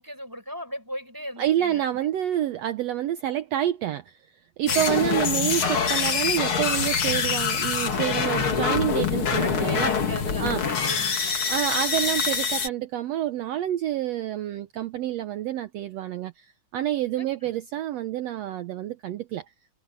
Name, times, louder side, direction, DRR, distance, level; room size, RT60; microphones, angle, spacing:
voice 1, 0.0-1.9 4.6-4.9 7.7-8.5 9.4-11.4 17.1-17.5, equal, 5° right, 6.0 m, -38 dB
voice 2, 1.4-4.2 4.6-9.9 10.4-10.6 11.4-19.4, right 12 dB, 80° right, 1.5 m, -28 dB
sound 1, 4.7-12.7, left 6 dB, 45° left, 2.5 m, -25 dB
omnidirectional pair, 4.0 m